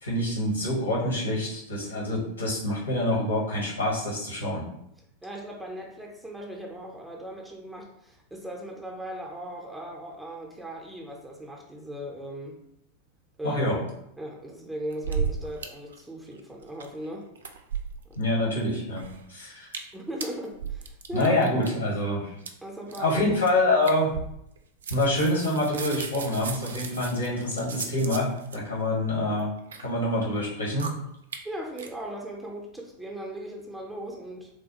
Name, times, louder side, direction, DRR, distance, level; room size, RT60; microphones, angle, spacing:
voice 1, 0.0-4.7 13.4-13.8 18.1-19.7 21.1-22.3 23.0-24.1 24.9-29.5 29.8-30.9, left 1 dB, 75° left, -4 dB, 1.1 m, -26 dB
voice 2, 5.2-12.6 13.4-13.7 14.2-17.3 19.9-21.4 22.6-23.4 31.4-34.5, right 1 dB, 5° right, -1 dB, 0.5 m, -38 dB
sound 1, 14.9-15.7 15.9-16.0 16.3-17.1 17.4-18.2 18.6-19.2 19.6-19.9 20.2-21.7 22.4-22.5 22.9-23.1 23.5-23.6 23.8-24.6 24.8-28.6 29.3-29.8 30.4-30.5 30.8-30.9 31.3-31.4 31.8-31.9, right 6 dB, 65° right, 0.3 m, -35 dB
3.3 x 2.2 x 2.8 m, 0.77 s
figure-of-eight pair, 90°, 0 cm